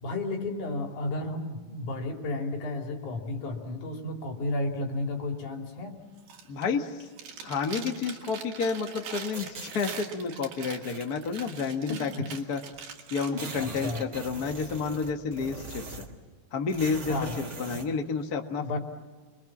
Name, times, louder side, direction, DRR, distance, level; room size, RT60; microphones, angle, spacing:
voice 1, 0.0-6.0 11.9-12.3 13.3-14.1 17.1-17.4 18.6-18.8, left 2 dB, 65° left, 3 dB, 4.2 m, -33 dB
Chewing mastication, 6.2-6.7 7.0-14.0, right 6 dB, 90° right, 3.9 m, -43 dB
voice 2, 6.5-7.1 7.4-12.6 13.1-16.1 16.5-18.8, left 5 dB, 40° left, 5 dB, 1.3 m, -30 dB
sound 1, 9.3-10.0 10.6-11.4 12.4-12.5 12.7-12.8 13.1-16.2 16.7-17.9, right 2 dB, 30° right, 1.9 m, -41 dB
28.5 x 22.5 x 7.3 m, 1.4 s
omnidirectional pair, 3.9 m